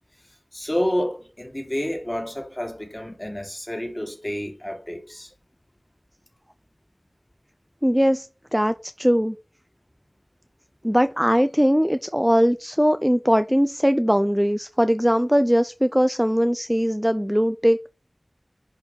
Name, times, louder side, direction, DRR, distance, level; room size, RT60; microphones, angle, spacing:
voice 1, 0.5-5.3, equal, 25° left, 2.9 m, -29 dB
voice 2, 7.8-9.4 10.8-17.9, equal, 5° right, 0.4 m, -20 dB
10.5 x 4.2 x 4.4 m
wide cardioid pair, 40°, 0 cm